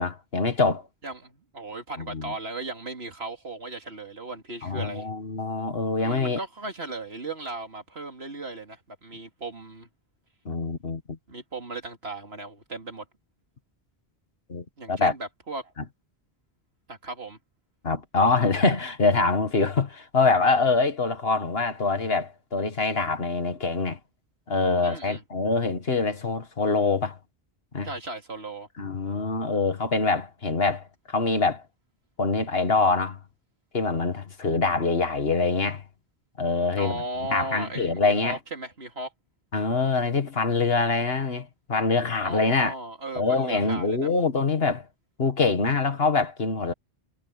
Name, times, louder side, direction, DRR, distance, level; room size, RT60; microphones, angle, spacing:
voice 1, 0.0-0.9 2.1-2.3 4.6-6.4 10.5-11.2 14.5-15.1 17.8-24.0 24.5-27.2 27.7-27.9 28.8-31.6 32.2-33.2 33.7-35.8 36.4-37.0 37.3-38.4 39.5-42.7 43.2-44.9 45.2-46.7, left 3 dB, 65° left, 2.1 m, -24 dB
voice 2, 1.0-5.1 6.0-9.9 11.3-13.1 14.8-15.7 16.9-17.4 24.8-25.2 27.8-28.7 36.7-39.1 42.2-44.1, right 2 dB, 65° right, 3.2 m, -36 dB
omnidirectional pair, 1.1 m